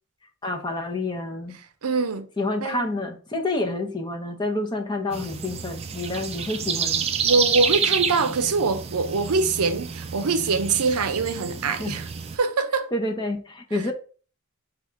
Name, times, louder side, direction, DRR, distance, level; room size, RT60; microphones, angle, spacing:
voice 1, 0.4-1.6 2.4-7.1 11.8-11.9 12.9-13.9, left 2 dB, 20° left, 0.6 m, -28 dB
voice 2, 1.8-2.3 2.6-2.9 7.2-12.1 12.4-12.9 13.7-13.8, right 4 dB, 85° right, 0.6 m, -24 dB
sound 1, 5.1-12.4, right 7 dB, 25° right, 0.3 m, -29 dB
4.8 x 2.4 x 4.3 m
head